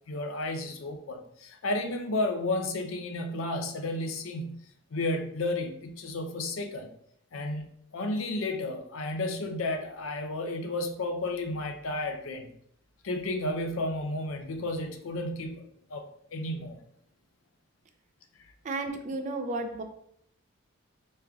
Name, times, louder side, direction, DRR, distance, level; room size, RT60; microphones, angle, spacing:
voice 1, 0.1-4.6 4.9-6.9 7.3-7.7 7.9-12.5 13.0-15.6 15.9-16.8 18.4-18.5, left 2 dB, 75° left, 6 dB, 0.5 m, -32 dB
voice 2, 18.6-19.8, right 2 dB, 35° right, 6 dB, 0.4 m, -33 dB
5.0 x 3.1 x 2.3 m, 0.71 s
head